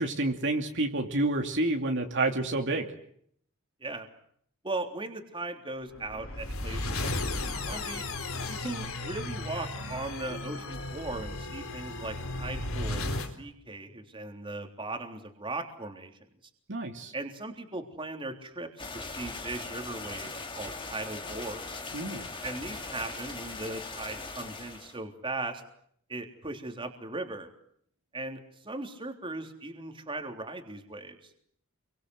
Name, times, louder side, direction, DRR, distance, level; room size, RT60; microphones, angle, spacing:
voice 1, 0.0-2.9 16.7-17.1 21.9-22.3, right 2 dB, 55° right, 3 dB, 2.7 m, -29 dB
voice 2, 4.6-8.0 8.5-16.1 17.1-21.8 22.4-25.6 26.1-27.5 28.1-31.3, right 2 dB, 25° right, 4 dB, 3.5 m, -38 dB
sound 1, 5.9-13.3, left 2 dB, 65° left, 4.3 m, -35 dB
sound 2, 18.8-25.0, left 3 dB, 25° left, 3.4 m, -40 dB
29.0 x 24.0 x 8.1 m, 0.67 s
head